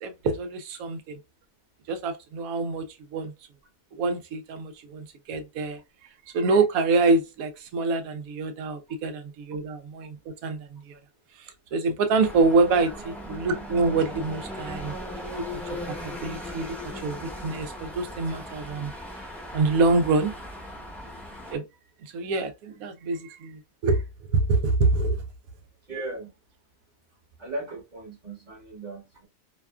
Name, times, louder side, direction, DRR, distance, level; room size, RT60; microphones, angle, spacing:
voice 1, 0.0-1.2 1.9-2.8 3.1-3.3 3.9-5.8 6.3-10.2 10.4-11.0 11.4-14.9 15.5-16.7 17.0-18.9 19.5-20.3 21.5-21.6 22.0-24.0 24.3-25.2, right 3 dB, 80° right, 1.0 m, -26 dB
sound 1, 12.2-21.6, left 1 dB, ahead, 0.6 m, -38 dB
voice 2, 25.9-26.3 27.4-29.3, right 2 dB, 35° right, 0.9 m, -37 dB
2.8 x 2.3 x 2.2 m
omnidirectional pair, 1.5 m